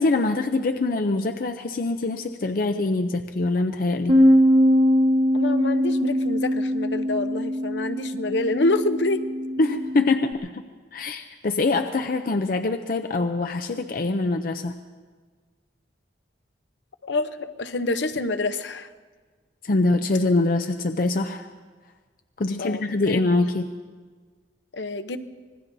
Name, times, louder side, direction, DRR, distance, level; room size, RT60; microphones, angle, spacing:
voice 1, 0.0-4.2 9.6-10.5 10.9-14.8 19.6-21.5 22.4-23.7, left 2 dB, 50° left, 6 dB, 0.5 m, -24 dB
Bass guitar, 4.1-10.3, equal, 40° right, 1.8 m, -21 dB
voice 2, 5.3-9.2 17.0-18.9 22.6-23.2 24.7-25.2, left 2 dB, 80° left, 9 dB, 0.8 m, -27 dB
25.5 x 21.0 x 2.7 m, 1.5 s
head